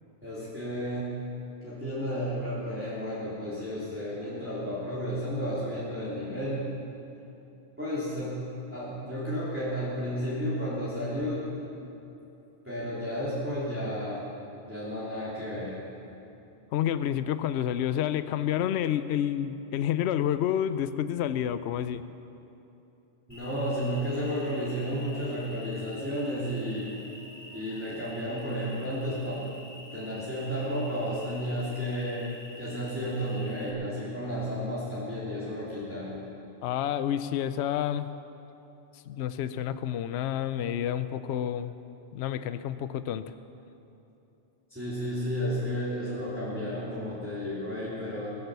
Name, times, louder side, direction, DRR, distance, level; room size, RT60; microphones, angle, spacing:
voice 1, 0.2-1.2 1.6-6.6 7.8-8.4 8.7-11.3 12.6-14.2 14.7-15.8 23.3-26.9 27.5-29.4 29.9-32.2 32.6-36.2 44.7-48.3, equal, 10° right, -11 dB, 3.1 m, -32 dB
voice 2, 16.7-22.0 36.6-38.1 39.1-41.7 42.1-43.3, left 10 dB, 70° left, 12 dB, 0.8 m, -29 dB
Cricket, 23.3-33.7, left 1 dB, 20° left, 2.0 m, -47 dB
22.0 x 8.8 x 6.8 m, 2.9 s
omnidirectional pair, 1.2 m